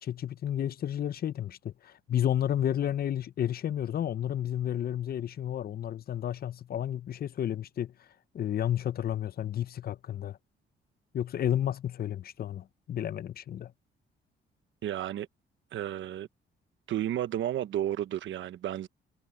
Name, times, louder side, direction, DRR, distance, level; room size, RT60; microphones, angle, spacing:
voice 1, 0.0-7.9 8.3-10.4 11.1-13.7, left 10 dB, 50° left, 0.6 m, -31 dB
voice 2, 14.8-15.3 15.7-16.3 16.9-18.9, right 12 dB, 75° right, 1.1 m, -32 dB
cardioid pair, 90°, 20 cm